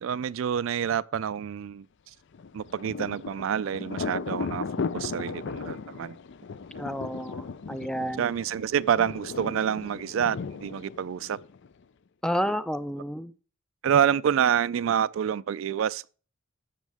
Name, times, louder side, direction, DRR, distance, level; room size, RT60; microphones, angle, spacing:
voice 1, 0.0-1.9 2.5-4.7 4.9-6.2 8.2-11.4 13.8-16.1, right 8 dB, 70° right, 0.3 m, -27 dB
Thunder, 2.3-11.8, left 5 dB, 60° left, 0.5 m, -36 dB
voice 2, 6.8-8.3 12.2-13.3, equal, 5° left, 0.4 m, -30 dB
12.5 x 7.5 x 3.5 m
head